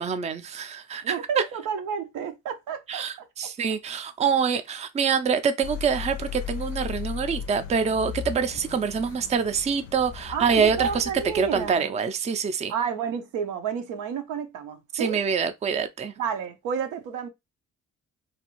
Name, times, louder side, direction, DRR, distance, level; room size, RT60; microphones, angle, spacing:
voice 1, 0.0-1.4 2.9-11.1 11.3-12.7 14.9-16.1, right 6 dB, 25° right, 0.4 m, -25 dB
voice 2, 1.0-3.3 10.3-11.9 12.7-15.2 16.2-17.3, right 7 dB, 90° right, 0.6 m, -31 dB
sound 1, 5.6-11.7, left 9 dB, 80° left, 0.5 m, -37 dB
2.5 x 2.3 x 2.9 m
cardioid pair, 90°, 30 cm